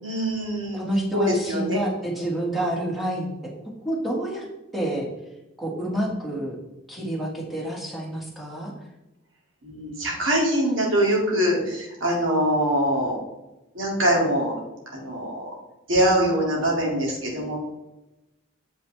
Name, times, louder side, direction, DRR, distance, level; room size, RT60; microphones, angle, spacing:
voice 1, 0.0-0.8 1.1-1.8 9.6-13.2 13.7-14.5 14.9-15.5 15.9-17.6, equal, 75° right, -2 dB, 2.3 m, -23 dB
voice 2, 0.7-3.3 3.8-4.4 4.7-5.0 5.6-6.6 6.9-8.7, right 1 dB, ahead, -4 dB, 1.7 m, -28 dB
7.3 x 5.6 x 3.3 m, 0.97 s
head